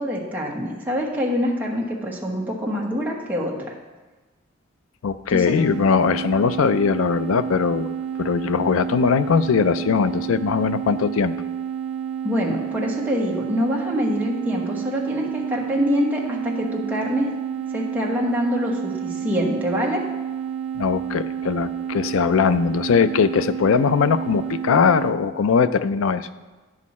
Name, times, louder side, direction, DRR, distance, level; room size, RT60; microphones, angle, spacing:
voice 1, 0.0-3.5 5.3-5.5 12.2-17.3 17.7-20.0, equal, 10° right, -4 dB, 1.3 m, -25 dB
voice 2, 5.0-11.3 20.7-26.3, left 6 dB, 75° left, 13 dB, 0.4 m, -20 dB
sound 1, 5.6-25.2, right 8 dB, 85° right, 0.6 m, -30 dB
9.9 x 6.4 x 4.2 m, 1.2 s
head